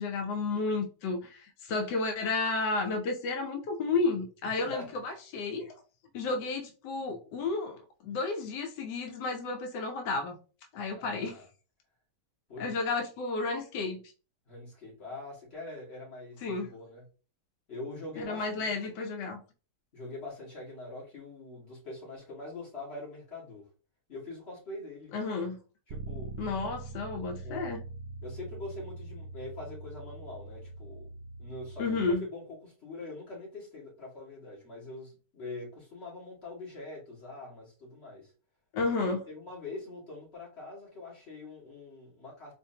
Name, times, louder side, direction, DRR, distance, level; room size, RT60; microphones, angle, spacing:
voice 1, 0.0-5.7 6.1-10.4 10.7-11.4 12.6-14.0 16.4-16.7 18.2-19.4 25.1-25.6 26.4-27.8 31.8-32.2 38.7-39.2, left 3 dB, 90° left, 1.3 m, -32 dB
voice 2, 4.4-4.9 11.0-11.5 12.5-12.7 14.5-17.1 17.7-18.7 19.9-23.6 24.1-25.1 25.9-26.3 27.4-27.6 28.2-31.1 31.4-38.3 39.0-42.5, left 2 dB, 40° left, 2.1 m, -43 dB
Bass guitar, 25.9-32.1, right 3 dB, 70° right, 0.9 m, -43 dB
4.3 x 2.9 x 2.7 m
omnidirectional pair, 1.8 m